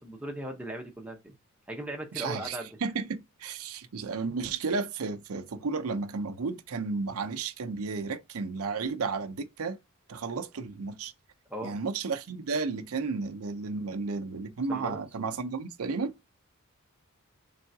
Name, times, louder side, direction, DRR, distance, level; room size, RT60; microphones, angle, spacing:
voice 1, 0.0-1.3 1.7-2.8 11.5-11.8 14.7-15.0, right 1 dB, 5° right, 0.8 m, -38 dB
voice 2, 2.1-9.8 10.1-11.1 11.6-16.1, right 4 dB, 75° right, 0.6 m, -33 dB
4.5 x 3.4 x 2.7 m
head